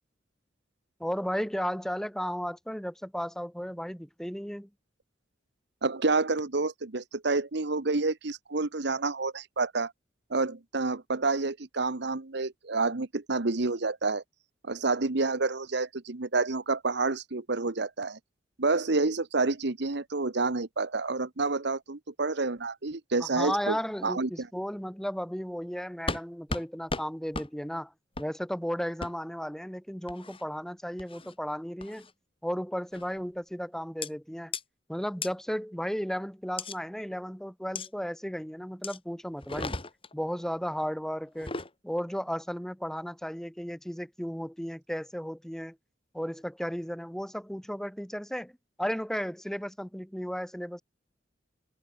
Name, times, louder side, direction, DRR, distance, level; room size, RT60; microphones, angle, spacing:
voice 1, 1.0-4.7 23.2-27.9 28.2-32.1 32.4-34.5 34.9-39.8 40.1-41.5 41.8-45.8 46.1-48.5 48.8-50.8, equal, 5° left, 2.4 m, -34 dB
voice 2, 5.8-9.9 10.3-14.2 14.7-18.2 18.6-23.8 24.0-24.5, right 3 dB, 65° right, 1.2 m, -29 dB
sound 1, 26.1-26.2 26.5-26.6 26.9-27.0 27.3-27.5 28.1-28.3 29.0-29.1 30.1-30.4 31.0-31.3 31.8-32.1 32.9-33.2 34.0-34.1 34.5-34.6 35.2-35.3 36.6-36.8 37.7-37.9 38.8-39.0 39.4-40.1 41.3-41.7, left 3 dB, 30° left, 4.2 m, -35 dB
head